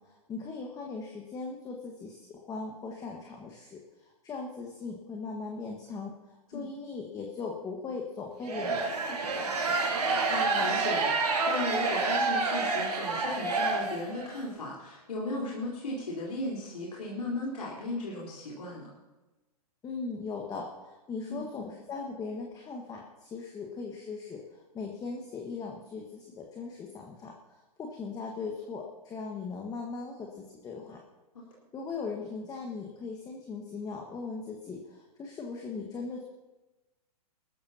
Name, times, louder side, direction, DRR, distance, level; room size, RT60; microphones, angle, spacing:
voice 1, 0.0-9.7 19.8-27.3 27.8-31.0 31.7-36.2, left 4 dB, 20° left, 1 dB, 1.6 m, -39 dB
sound 1, 8.4-14.4, right 3 dB, 85° right, 3.2 m, -28 dB
voice 2, 10.0-18.9 21.3-21.5, left 1 dB, 85° left, -5 dB, 4.4 m, -36 dB
20.0 x 14.0 x 2.9 m, 1.1 s
hypercardioid pair, 125°, 20 cm